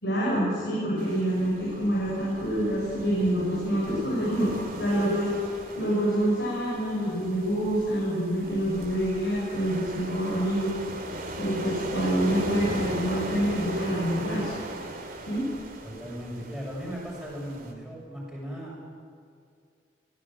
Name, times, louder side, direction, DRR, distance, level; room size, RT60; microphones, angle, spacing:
voice 1, 0.0-5.3 5.7-10.8 11.4-14.5 15.3-15.4, right 1 dB, 65° left, -7 dB, 6.6 m, -26 dB
sound 1, 1.0-17.7, right 1 dB, 45° right, 3.1 m, -38 dB
voice 2, 15.8-18.8, equal, ahead, -5 dB, 7.4 m, -37 dB
23.0 x 18.0 x 7.9 m, 2.3 s
head